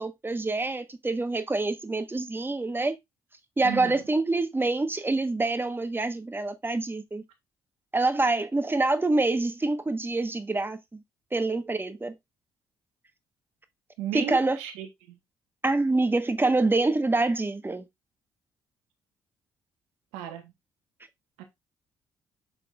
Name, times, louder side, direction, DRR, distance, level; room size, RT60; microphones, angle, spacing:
voice 1, 0.0-3.0 3.6-7.2 7.9-11.0 11.3-12.1 14.1-14.6 15.6-17.8, right 2 dB, 20° right, 1.3 m, -26 dB
voice 2, 3.6-4.0 14.0-15.2 20.1-20.5 21.4-21.5, right 10 dB, 75° right, 1.2 m, -35 dB
6.3 x 6.3 x 2.5 m
hypercardioid pair, 45°, 11 cm